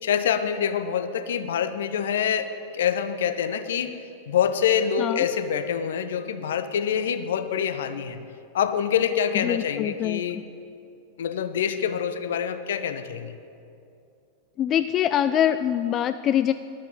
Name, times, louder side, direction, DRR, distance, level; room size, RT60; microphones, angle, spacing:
voice 1, 0.0-8.2 8.5-10.4 11.2-13.3, left 8 dB, 60° left, 11 dB, 0.8 m, -26 dB
voice 2, 9.3-10.2 14.6-16.5, left 10 dB, 30° left, 12 dB, 0.3 m, -24 dB
11.5 x 11.0 x 7.6 m, 2.6 s
figure-of-eight pair, 90°, 0 cm